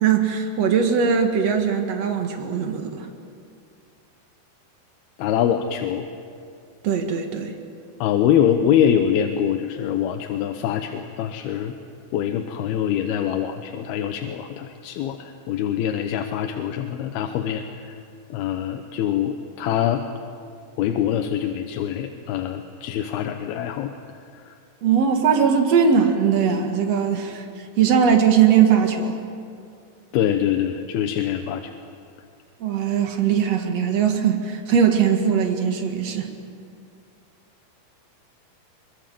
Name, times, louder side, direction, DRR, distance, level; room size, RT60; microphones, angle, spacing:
voice 1, 0.0-3.1 6.8-7.5 24.8-29.2 32.6-36.3, right 7 dB, 50° right, 4 dB, 2.3 m, -20 dB
voice 2, 5.2-6.1 8.0-11.7 12.1-18.0 18.3-20.0 20.8-23.9 24.3-24.5 30.1-31.7, left 9 dB, 75° left, 5 dB, 2.7 m, -24 dB
23.5 x 22.5 x 7.6 m, 2.4 s
omnidirectional pair, 4.7 m